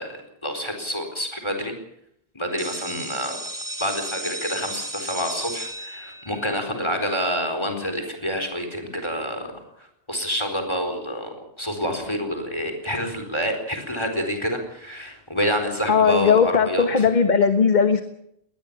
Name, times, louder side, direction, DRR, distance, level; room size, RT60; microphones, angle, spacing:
voice 1, 0.0-1.7 2.3-3.4 3.8-9.6 10.1-17.1, equal, 25° left, 6 dB, 4.3 m, -28 dB
sound 1, 2.6-8.2, right 1 dB, 20° right, 1.2 m, -35 dB
voice 2, 15.9-18.0, left 6 dB, 50° left, 8 dB, 1.4 m, -18 dB
21.0 x 19.0 x 6.9 m, 0.75 s
omnidirectional pair, 1.0 m